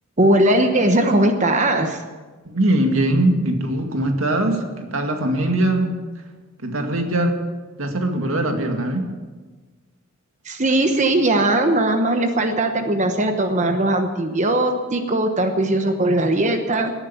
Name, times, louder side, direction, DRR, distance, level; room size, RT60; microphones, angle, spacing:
voice 1, 0.2-2.0 10.4-16.9, right 1 dB, 35° right, 6 dB, 1.0 m, -19 dB
voice 2, 2.4-6.0 6.6-7.4 7.8-9.1, right 1 dB, 75° right, 4 dB, 2.1 m, -21 dB
18.5 x 9.9 x 7.1 m, 1.3 s
head